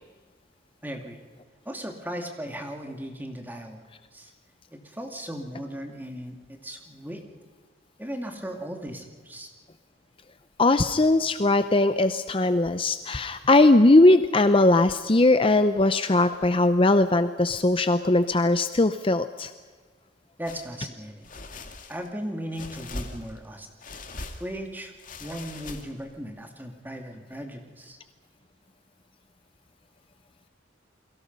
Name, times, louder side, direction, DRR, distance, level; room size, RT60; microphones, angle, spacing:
voice 1, 0.8-1.2 1.6-3.8 4.1-4.3 4.7-7.2 8.0-9.5 20.4-21.6 21.9-23.7 24.4-24.9 25.2-28.0, equal, 10° right, 3 dB, 2.6 m, -37 dB
voice 2, 10.6-19.5, left 2 dB, 30° left, 10 dB, 0.7 m, -20 dB
sound 1, 20.5-20.7 21.2-22.1 22.5-23.5 23.8-24.6 25.0-26.1, left 2 dB, 45° left, 2.4 m, -40 dB
29.5 x 22.5 x 5.5 m, 1.5 s
head